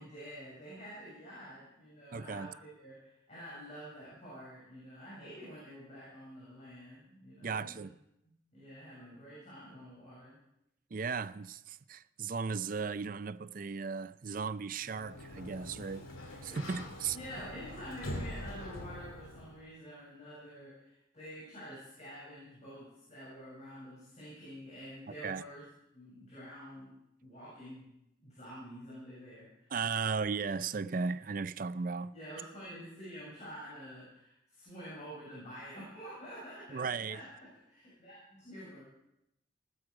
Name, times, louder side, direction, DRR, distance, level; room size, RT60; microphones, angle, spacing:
voice 1, 0.0-7.7 8.5-10.4 16.5-16.6 17.1-25.6 25.9-26.9 27.2-27.9 28.2-29.7 32.1-37.3 37.7-38.8, equal, 35° left, 7.7 m, -48 dB
voice 2, 2.1-2.5 7.4-7.9 10.9-16.1 16.4-17.2 25.2-25.4 29.7-32.1 36.7-37.2, right 5 dB, 45° right, 0.5 m, -36 dB
Sliding door, 14.8-19.7, left 1 dB, 85° left, 2.9 m, -44 dB
20.0 x 12.5 x 4.9 m
head